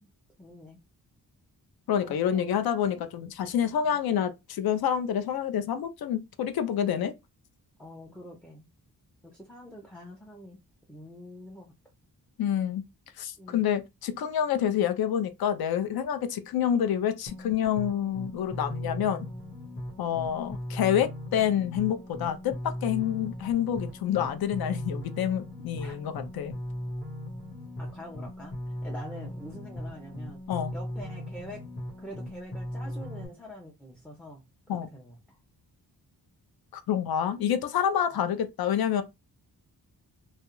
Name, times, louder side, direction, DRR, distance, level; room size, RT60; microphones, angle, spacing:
voice 1, 0.4-0.8 2.0-2.7 3.8-4.0 7.8-8.7 9.2-10.6 10.9-11.7 13.4-13.7 25.8-26.0 27.8-28.5 28.8-30.4 30.7-31.6 32.0-34.4 34.7-35.4, equal, 5° left, 0.4 m, -45 dB
voice 2, 1.9-7.1 12.4-12.8 13.2-19.3 20.0-26.6 30.5-30.7 34.7-34.9 36.7-39.0, left 9 dB, 65° left, 0.5 m, -28 dB
sound 1, 17.3-33.3, left 1 dB, 30° left, 0.9 m, -38 dB
2.3 x 2.0 x 2.9 m
wide cardioid pair, 115°, 40 cm